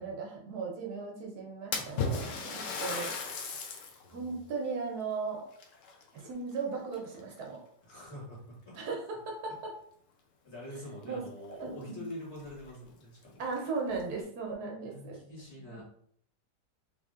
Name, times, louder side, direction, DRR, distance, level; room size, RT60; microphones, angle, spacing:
voice 1, 0.0-3.1 4.1-5.4 6.1-7.6 8.7-9.7 11.0-11.2 11.6-12.0 13.4-15.2 15.7-15.8, right 4 dB, 75° right, 0 dB, 1.3 m, -37 dB
Splash splatter, 1.7-4.0 4.5-4.6 5.5-6.6 6.9-7.4 8.2-8.3 8.8-8.9 11.0-11.1 11.4-11.5 12.1-12.2 12.6-12.7 13.4-14.0, left 4 dB, 65° left, 0.8 m, -36 dB
voice 2, 1.8-2.3 4.0-4.3 7.8-8.8 9.5-9.6 10.4-13.4 14.8-15.8, left 1 dB, 45° left, -6 dB, 1.8 m, -45 dB
3.5 x 3.2 x 2.4 m, 0.64 s
omnidirectional pair, 1.7 m